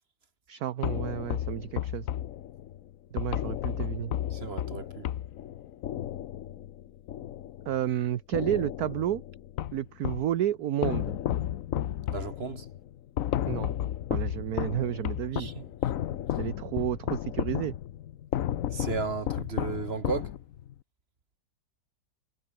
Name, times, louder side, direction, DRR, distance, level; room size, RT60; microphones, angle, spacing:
voice 1, 0.5-2.1 3.1-4.1 7.7-9.2 9.7-11.2 13.5-13.7 14.1-15.5 16.4-17.8, right 11 dB, 65° right, 1.3 m, -31 dB
sound 1, 0.8-7.9 8.3-10.3 10.8-20.7, left 11 dB, 60° left, 1.0 m, -33 dB
voice 2, 4.3-5.1 12.1-12.7 15.3-15.6 18.7-20.3, right 4 dB, 35° right, 1.7 m, -34 dB
omnidirectional pair, 1.9 m